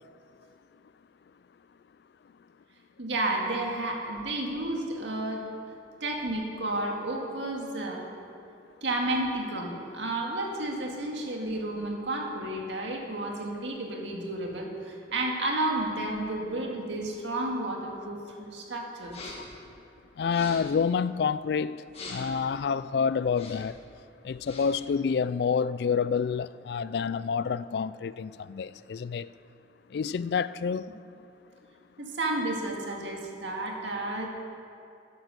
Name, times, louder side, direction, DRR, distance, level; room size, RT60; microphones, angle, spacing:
voice 1, 3.0-5.4 6.0-8.1 8.4-8.5 8.8-19.2 32.0-34.3, right 2 dB, 85° right, 2.0 m, -32 dB
sound 1, 19.0-19.6 20.2-20.8 21.9-22.4 23.2-23.8 24.3-24.8, left 2 dB, 35° left, 1.9 m, -44 dB
voice 2, 20.2-21.8 22.1-23.8 24.2-29.3 29.9-30.9, left 6 dB, 60° left, 0.3 m, -28 dB
11.0 x 10.5 x 6.7 m
head